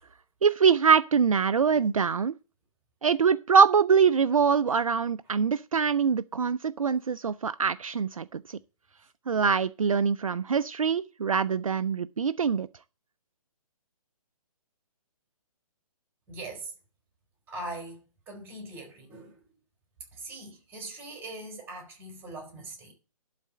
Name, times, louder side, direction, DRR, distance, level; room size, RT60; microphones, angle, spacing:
voice 1, 0.4-2.3 3.0-8.6 9.3-12.7, right 6 dB, 60° right, 0.5 m, -24 dB
voice 2, 16.3-16.7 17.5-19.3 20.1-22.9, right 2 dB, 10° right, 3.8 m, -41 dB
11.5 x 4.2 x 7.7 m
figure-of-eight pair, 135°, 19 cm